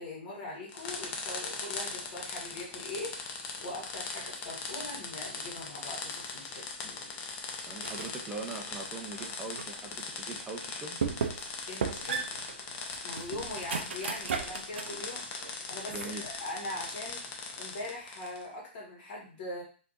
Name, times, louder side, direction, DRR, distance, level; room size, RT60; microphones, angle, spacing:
voice 1, 0.0-6.7 11.7-12.3 13.0-15.3 15.7-19.6, left 2 dB, 50° left, -2 dB, 1.7 m, -41 dB
sound 1, 0.7-18.5, left 4 dB, 30° left, 0.6 m, -40 dB
voice 2, 7.7-11.0 15.9-16.2, right 3 dB, 15° right, 0 dB, 0.5 m, -41 dB
sound 2, 7.8-8.2 8.7-9.8 10.3-10.4 11.0-11.5 11.8-15.0 15.4-16.3, right 6 dB, 75° right, 0.5 m, -36 dB
3.4 x 2.7 x 2.5 m, 0.39 s
hypercardioid pair, 140°, 6 cm